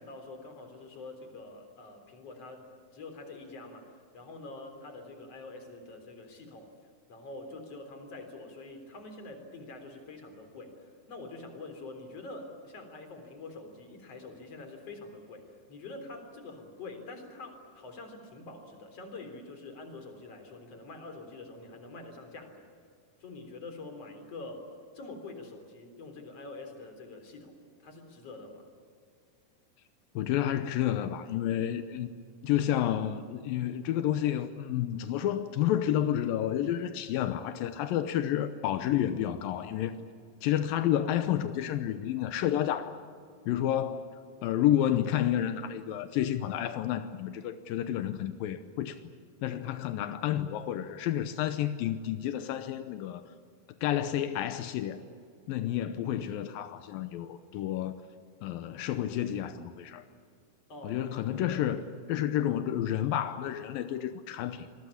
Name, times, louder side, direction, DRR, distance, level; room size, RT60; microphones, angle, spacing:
voice 1, 0.0-2.6 2.9-6.7 7.1-22.7 23.2-24.6 24.9-28.7 60.7-61.0 61.4-61.6 62.1-62.3, left 2 dB, 45° left, 4.6 m, -45 dB
voice 2, 30.2-32.2 32.4-40.0 40.4-43.0 43.5-44.1 44.4-49.0 49.4-53.2 53.8-55.0 55.5-58.0 58.4-60.0 60.8-61.8 62.1-64.7, left 11 dB, 85° left, 2.6 m, -30 dB
26.5 x 21.0 x 8.6 m
omnidirectional pair, 4.1 m